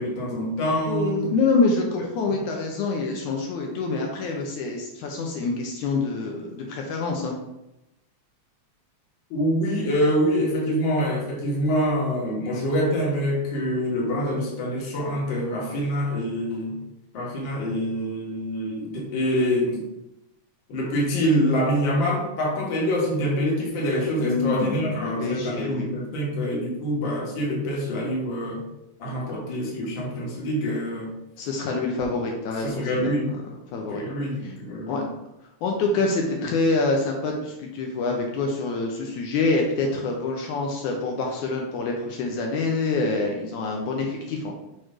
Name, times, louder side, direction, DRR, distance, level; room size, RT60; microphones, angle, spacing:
voice 1, 0.0-1.3 2.0-2.1 9.3-16.8 17.1-19.9 20.7-28.6 29.0-31.2 32.6-33.3 33.9-35.1, equal, 45° left, -3 dB, 1.8 m, -25 dB
voice 2, 0.9-7.4 24.2-25.9 31.4-33.1 33.7-34.0 34.4-34.5 34.9-35.0 35.6-44.6, left 3 dB, 75° left, 0 dB, 2.1 m, -26 dB
6.4 x 3.1 x 4.9 m, 0.90 s
omnidirectional pair, 3.6 m